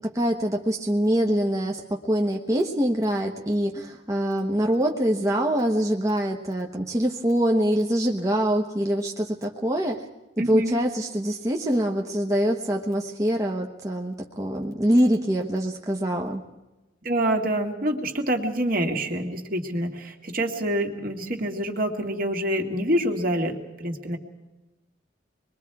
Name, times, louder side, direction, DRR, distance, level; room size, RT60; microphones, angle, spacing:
voice 1, 0.1-10.0 10.5-16.4, equal, 20° right, 1 dB, 1.0 m, -24 dB
voice 2, 10.4-10.8 17.0-24.2, right 1 dB, 50° right, 3 dB, 2.0 m, -26 dB
25.5 x 21.5 x 4.7 m, 1.1 s
head